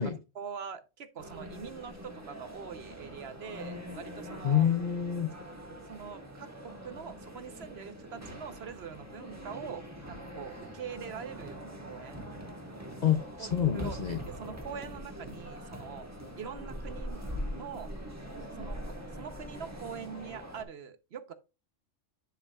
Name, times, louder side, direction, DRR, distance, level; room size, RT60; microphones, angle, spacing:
voice 1, 0.0-4.7 5.9-12.3 13.4-16.1 16.4-17.2 17.6-17.9 18.6-21.3, right 7 dB, 60° right, 1.0 m, -44 dB
sound 1, 1.2-20.6, equal, 15° right, 1.4 m, -43 dB
voice 2, 4.4-5.3 13.0-14.2, left 9 dB, 50° left, 0.6 m, -27 dB
10.0 x 5.6 x 2.3 m
omnidirectional pair, 1.2 m